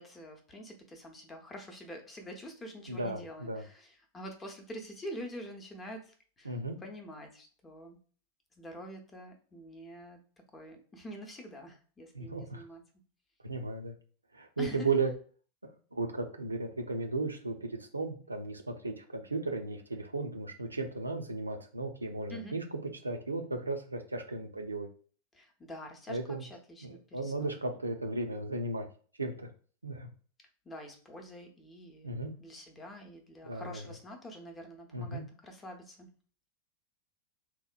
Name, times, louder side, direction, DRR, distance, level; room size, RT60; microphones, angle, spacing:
voice 1, 0.0-6.6 6.8-8.0 8.6-10.2 10.5-12.8 14.6-14.9 22.3-22.5 25.3-27.6 30.6-36.1, equal, 15° left, 3 dB, 0.7 m, -46 dB
voice 2, 2.9-3.6 6.4-6.8 12.1-12.6 13.4-14.0 14.3-15.1 15.6-22.6 23.0-24.9 26.1-26.4 26.8-28.9 29.2-29.5 29.8-30.1 32.0-32.3 33.4-33.8 34.9-35.3, right 3 dB, 80° right, 4 dB, 0.4 m, -35 dB
2.8 x 2.1 x 2.5 m, 0.43 s
figure-of-eight pair, 90°, 0 cm